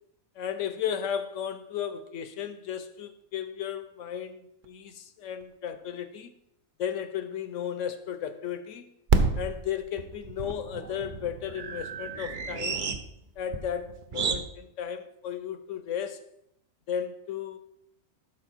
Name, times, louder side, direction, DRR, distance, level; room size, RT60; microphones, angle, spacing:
voice 1, 0.4-6.3 6.8-8.9 9.3-12.8 13.4-16.2 16.9-17.6, left 9 dB, 65° left, 0.9 m, -34 dB
sound 1, 4.6-4.7 5.4-5.5 5.7-5.8 9.1-14.4, right 4 dB, 50° right, 0.6 m, -30 dB
12.0 x 4.4 x 4.4 m
omnidirectional pair, 1.5 m